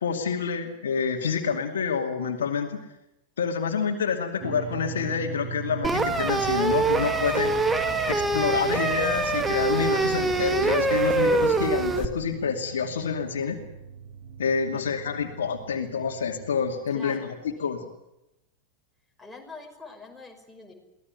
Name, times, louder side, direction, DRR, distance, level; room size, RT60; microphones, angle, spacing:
voice 1, 0.0-2.8 3.4-7.5 8.1-13.6 14.4-17.8, left 6 dB, 65° left, 4 dB, 2.5 m, -28 dB
sound 1, 4.4-16.7, right 6 dB, 45° right, 2.4 m, -41 dB
sound 2, 5.8-12.1, right 3 dB, 15° right, 1.9 m, -24 dB
voice 2, 16.9-17.9 19.2-20.7, left 3 dB, 5° left, 0 dB, 5.6 m, -45 dB
24.0 x 17.5 x 9.5 m, 0.89 s
figure-of-eight pair, 90°, 0 cm